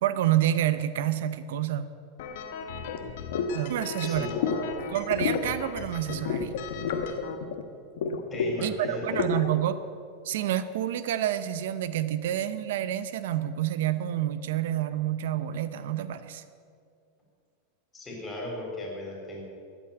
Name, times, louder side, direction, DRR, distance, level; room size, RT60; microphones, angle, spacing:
voice 1, 0.0-1.8 3.5-4.3 4.9-6.6 8.6-9.8 10.2-16.4, right 12 dB, 75° right, 13 dB, 0.7 m, -28 dB
sound 1, 2.2-7.3, left 6 dB, 70° left, 1.5 m, -39 dB
sound 2, 2.9-3.0 3.3-3.5 3.8-4.6 5.0-5.5 6.1-7.6 8.0-9.5, left 6 dB, 85° left, 1.3 m, -30 dB
voice 2, 4.0-4.7 8.3-9.3 17.9-19.4, left 1 dB, 15° left, -2 dB, 4.1 m, -37 dB
13.5 x 8.9 x 9.0 m, 2.2 s
supercardioid pair, 160°, 0 cm